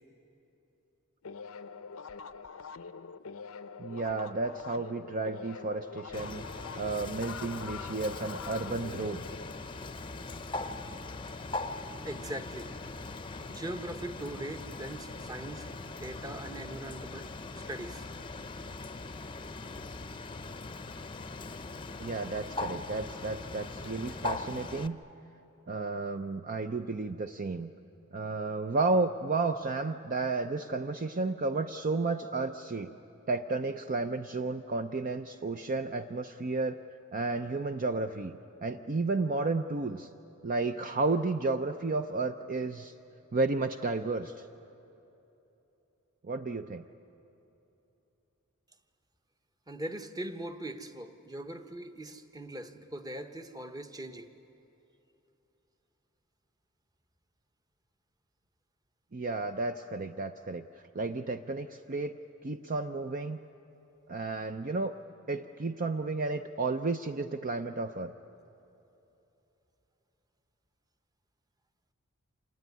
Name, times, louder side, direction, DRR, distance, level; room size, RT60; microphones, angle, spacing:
sound 1, 1.2-10.4, left 5 dB, 75° left, 0.6 m, -45 dB
voice 1, 3.8-6.4 6.8-9.2 22.0-25.0 25.7-27.7 28.1-32.9 33.3-36.8 37.1-40.1 40.4-42.9 43.3-44.4 46.2-46.8 59.1-60.6 60.9-62.2 62.4-63.4 64.1-64.9 65.3-68.1, right 3 dB, 40° right, 8 dB, 0.6 m, -32 dB
Bird, 6.1-24.9, left 3 dB, 25° left, 0.7 m, -40 dB
voice 2, 12.0-13.0 13.5-15.7 16.0-17.3 17.5-18.1 49.7-54.3, right 1 dB, 20° right, 8 dB, 1.0 m, -41 dB
27.0 x 19.0 x 9.6 m, 3.0 s
head